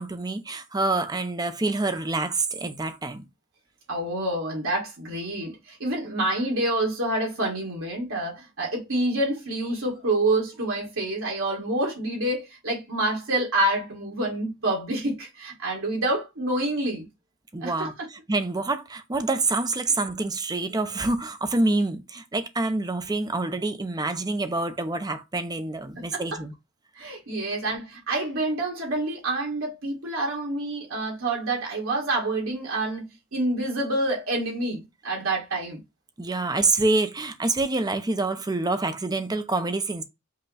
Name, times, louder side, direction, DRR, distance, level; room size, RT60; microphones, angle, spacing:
voice 1, 0.0-3.2 17.5-26.5 36.2-40.0, right 2 dB, 20° right, 0.6 m, -27 dB
voice 2, 3.9-17.1 17.6-17.9 26.1-26.2 27.0-35.8, right 1 dB, 70° right, 1.7 m, -27 dB
5.5 x 2.3 x 4.0 m
head